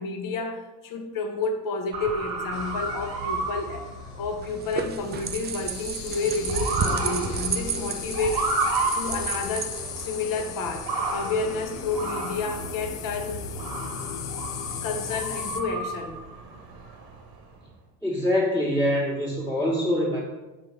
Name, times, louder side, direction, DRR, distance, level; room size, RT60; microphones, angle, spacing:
voice 1, 0.0-3.9 4.2-8.4 8.9-13.5 14.8-16.3, left 3 dB, 45° left, 5 dB, 0.9 m, -30 dB
Motor vehicle (road) / Siren, 1.9-17.5, right 3 dB, 50° right, 1.1 m, -33 dB
sound 1, 2.5-15.6, left 8 dB, 80° left, 0.6 m, -37 dB
sound 2, 4.4-10.4, right 6 dB, 25° right, 0.4 m, -32 dB
voice 2, 18.0-20.2, left 1 dB, 5° left, -7 dB, 1.4 m, -24 dB
6.0 x 4.8 x 3.3 m, 1.1 s
figure-of-eight pair, 55°, 46 cm